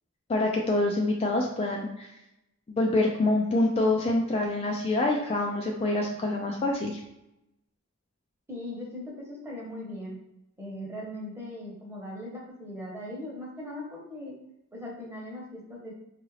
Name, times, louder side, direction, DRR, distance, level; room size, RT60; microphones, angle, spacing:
voice 1, 0.3-2.1 2.7-7.0, left 2 dB, 25° left, 0 dB, 0.3 m, -26 dB
voice 2, 8.5-10.2 10.6-14.4 14.7-15.9, left 1 dB, 10° right, -4 dB, 0.9 m, -39 dB
3.9 x 2.4 x 3.1 m, 0.87 s
head